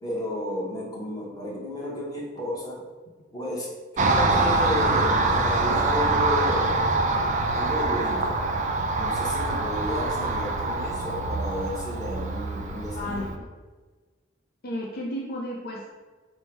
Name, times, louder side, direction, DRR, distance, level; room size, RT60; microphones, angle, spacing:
voice 1, 0.0-2.8 3.3-6.8 7.5-8.4 9.0-13.3, left 1 dB, 20° left, -4 dB, 0.9 m, -32 dB
Car passing by, 4.0-13.4, right 2 dB, 40° right, 0.4 m, -25 dB
voice 2, 12.9-13.5 14.6-16.0, left 1 dB, 50° left, -2 dB, 0.5 m, -33 dB
4.5 x 2.2 x 4.5 m, 1.4 s
head